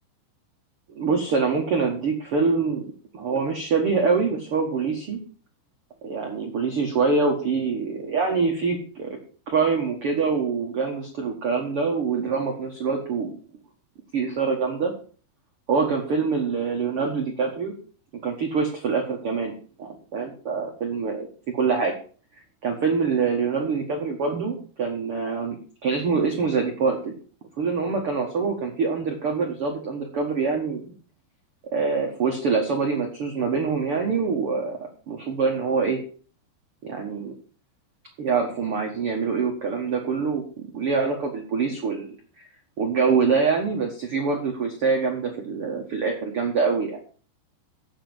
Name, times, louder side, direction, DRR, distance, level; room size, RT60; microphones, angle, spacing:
voice 1, 0.9-2.8 3.1-5.2 6.0-9.2 9.5-13.3 14.1-14.9 15.7-17.7 18.2-21.3 21.5-21.9 22.6-27.1 27.6-30.9 31.7-36.0 36.8-37.3 38.2-40.4 40.7-42.5 42.8-47.0, right 5 dB, 80° right, 2 dB, 1.2 m, -25 dB
8.5 x 7.5 x 7.9 m, 0.42 s
omnidirectional pair, 5.2 m